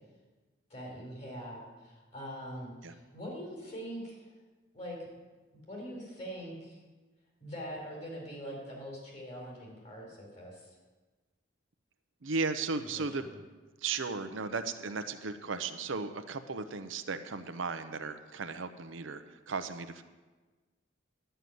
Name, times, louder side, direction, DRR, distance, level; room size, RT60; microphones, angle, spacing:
voice 1, 0.7-4.2 4.7-5.0 5.5-6.8 7.4-10.7 12.9-13.3, equal, 35° left, -2 dB, 4.3 m, -43 dB
voice 2, 12.2-13.3 13.8-20.0, right 4 dB, 80° right, 9 dB, 0.8 m, -36 dB
11.0 x 6.7 x 9.3 m, 1.3 s
head